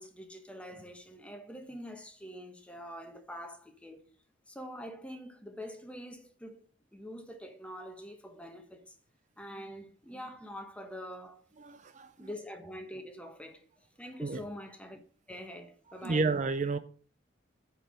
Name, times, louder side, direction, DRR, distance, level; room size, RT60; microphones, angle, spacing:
voice 1, 0.0-4.0 4.5-9.0 9.4-11.4 12.2-13.6 14.0-15.0 15.3-16.3, equal, 5° left, 1.1 m, -45 dB
voice 2, 11.6-12.3 14.2-14.4 16.0-16.8, right 3 dB, 40° right, 0.5 m, -31 dB
9.1 x 4.7 x 6.2 m
head